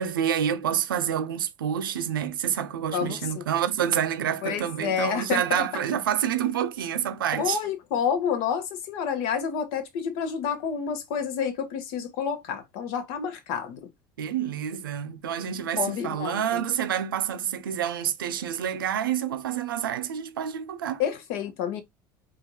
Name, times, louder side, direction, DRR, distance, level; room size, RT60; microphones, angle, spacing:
voice 1, 0.0-7.6 14.2-21.0, right 9 dB, 85° right, 0.5 m, -28 dB
voice 2, 2.9-3.4 4.4-5.8 7.3-13.8 15.8-16.6 21.0-21.8, left 7 dB, 65° left, 0.9 m, -29 dB
4.6 x 2.4 x 2.7 m
hypercardioid pair, 70°, 11 cm